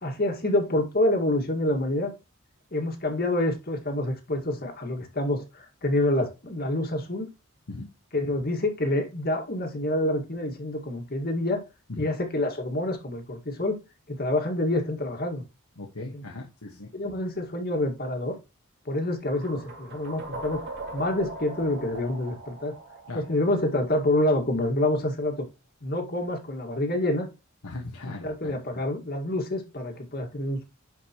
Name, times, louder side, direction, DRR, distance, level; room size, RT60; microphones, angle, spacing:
voice 1, 0.0-2.1 2.7-7.3 8.1-11.6 12.0-13.8 14.1-15.4 16.1-16.2 16.9-18.4 18.9-20.6 20.9-22.7 23.1-25.4 25.8-27.3 28.0-30.6, left 1 dB, 45° left, 2.0 m, -27 dB
voice 2, 15.8-16.9 23.1-23.2 27.6-28.8, left 2 dB, 90° left, 1.6 m, -38 dB
sound 1, 19.3-24.2, right 2 dB, 50° right, 2.5 m, -40 dB
11.0 x 5.2 x 3.0 m
head